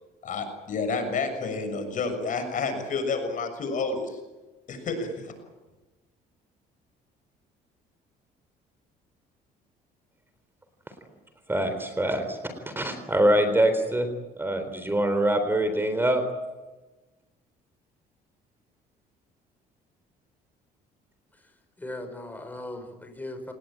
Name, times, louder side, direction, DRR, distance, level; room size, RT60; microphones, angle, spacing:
voice 1, 0.2-4.2 4.7-5.3, left 4 dB, 50° left, 7 dB, 6.8 m, -30 dB
voice 2, 11.5-12.4 12.7-14.1 14.4-16.2, right 1 dB, 15° right, 8 dB, 3.9 m, -24 dB
voice 3, 21.3-23.5, left 1 dB, 10° left, 6 dB, 5.6 m, -39 dB
28.5 x 20.0 x 8.9 m, 1.2 s
cardioid pair, 110°, 17 cm